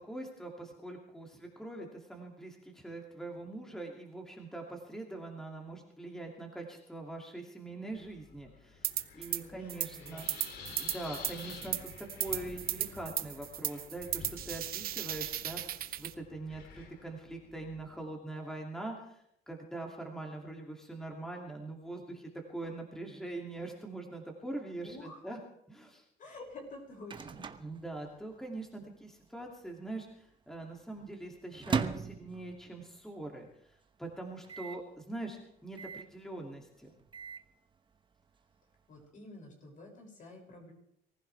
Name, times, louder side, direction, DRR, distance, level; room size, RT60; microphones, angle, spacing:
voice 1, 0.1-8.9 9.1-10.3 10.8-25.4 25.7-26.0 27.6-33.5 34.0-36.9, right 2 dB, 5° left, 0 dB, 2.6 m, -43 dB
Wind, 7.9-18.0, left 5 dB, 70° left, 2.9 m, -51 dB
sound 1, 8.8-9.4 9.7-16.1, right 12 dB, 60° right, 1.0 m, -36 dB
voice 2, 9.4-10.4 24.8-25.4 26.2-27.5 38.9-40.7, left 2 dB, 50° left, 1 dB, 6.5 m, -49 dB
Microwave oven, 26.5-28.7 28.9-29.0 29.2-29.8 30.3-33.0 33.4-33.5 33.7-33.8 34.4-34.9 35.8-36.2 36.8-37.5, right 6 dB, 30° right, 1.0 m, -39 dB
24.0 x 15.0 x 3.4 m, 0.75 s
cardioid pair, 110°, 17 cm